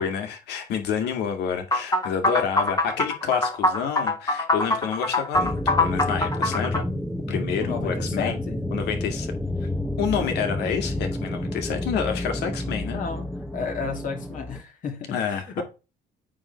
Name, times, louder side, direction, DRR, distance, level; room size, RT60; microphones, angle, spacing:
voice 1, 0.0-6.9 7.3-8.4 8.7-9.3 10.0-13.0 15.1-15.6, left 7 dB, 80° left, 2.3 m, -28 dB
sound 1, 1.7-6.8, left 2 dB, 20° left, 1.5 m, -23 dB
sound 2, 5.3-14.6, left 1 dB, ahead, 1.0 m, -30 dB
voice 2, 7.6-8.6 12.9-13.3 13.5-15.6, left 5 dB, 50° left, 2.6 m, -32 dB
8.6 x 3.7 x 5.9 m
cardioid pair, 110°, 17 cm